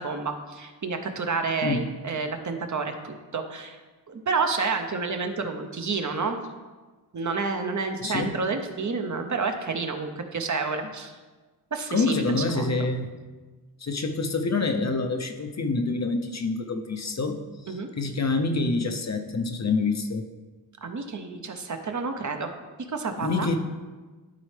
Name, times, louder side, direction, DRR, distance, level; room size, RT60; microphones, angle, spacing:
voice 1, 0.0-3.8 4.1-6.4 7.1-11.2 11.7-12.7 17.7-17.9 20.8-22.5 22.9-23.5, right 4 dB, 45° right, 5 dB, 0.7 m, -29 dB
voice 2, 8.0-8.4 11.9-13.2 13.8-20.3 23.2-23.6, left 3 dB, 40° left, 5 dB, 0.6 m, -27 dB
12.0 x 4.2 x 3.3 m, 1.3 s
wide cardioid pair, 120°, 41 cm